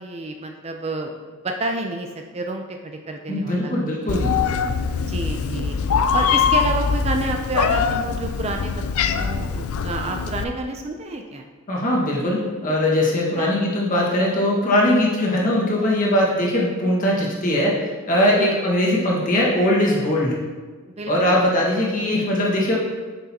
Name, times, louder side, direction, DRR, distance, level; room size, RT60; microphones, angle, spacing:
voice 1, 0.0-4.2 5.0-5.8 6.1-11.5 13.4-13.6 18.4-18.6 20.9-21.4, right 2 dB, 30° right, 4 dB, 0.4 m, -29 dB
voice 2, 3.3-4.4 11.7-20.4 21.1-22.8, left 1 dB, 40° left, -4 dB, 1.6 m, -20 dB
Meow, 4.1-10.4, left 6 dB, 80° left, 0.4 m, -22 dB
9.0 x 6.2 x 2.9 m, 1.4 s
head